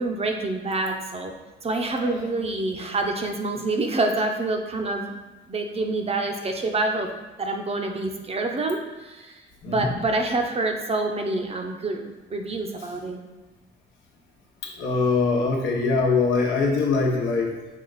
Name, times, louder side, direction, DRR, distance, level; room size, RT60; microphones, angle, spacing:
voice 1, 0.0-1.3 1.6-5.1 5.5-7.1 7.4-9.4 9.7-13.2, right 2 dB, 30° right, 3 dB, 0.6 m, -27 dB
voice 2, 14.6-17.5, left 4 dB, 80° left, -2 dB, 1.0 m, -23 dB
5.4 x 2.4 x 3.9 m, 1.2 s
cardioid pair, 90°, 20 cm